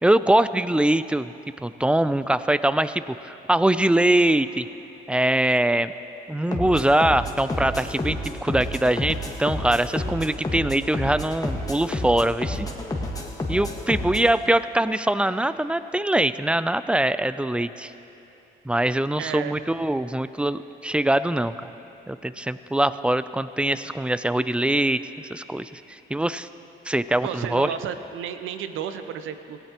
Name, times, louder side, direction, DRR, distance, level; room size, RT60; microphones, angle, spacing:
voice 1, 0.0-1.3 1.6-4.7 5.1-5.9 6.3-12.7 13.5-17.9 18.7-21.7 22.1-25.0 25.3-26.5 26.9-27.7, right 1 dB, 5° right, 14 dB, 0.3 m, -23 dB
sound 1, 6.5-14.3, left 1 dB, 20° left, 1.5 m, -30 dB
voice 2, 19.2-19.6 27.2-29.6, right 8 dB, 85° right, 10 dB, 0.7 m, -32 dB
18.0 x 16.0 x 3.0 m, 2.9 s
cardioid pair, 90°, 20 cm